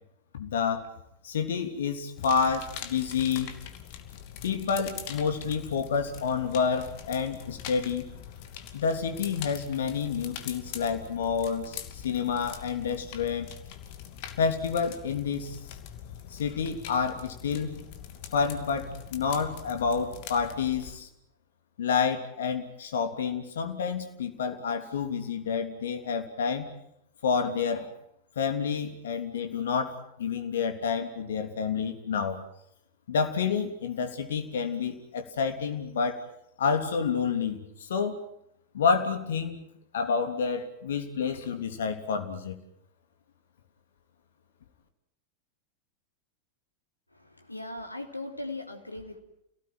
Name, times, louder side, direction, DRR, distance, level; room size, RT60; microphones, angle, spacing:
voice 1, 0.3-0.9 1.2-3.5 4.4-8.1 8.7-13.5 14.4-15.6 16.3-17.8 18.3-21.1 21.8-26.7 27.2-27.9 28.3-32.4 33.1-36.2 36.6-38.1 38.7-39.6 39.9-42.6, left 6 dB, 60° left, 7 dB, 3.3 m, -29 dB
sound 1, 2.2-20.9, left 9 dB, 45° left, 2.7 m, -43 dB
voice 2, 47.1-49.2, left 2 dB, 85° left, 5 dB, 3.0 m, -39 dB
29.0 x 18.0 x 9.2 m, 0.78 s
figure-of-eight pair, 90°, 0 cm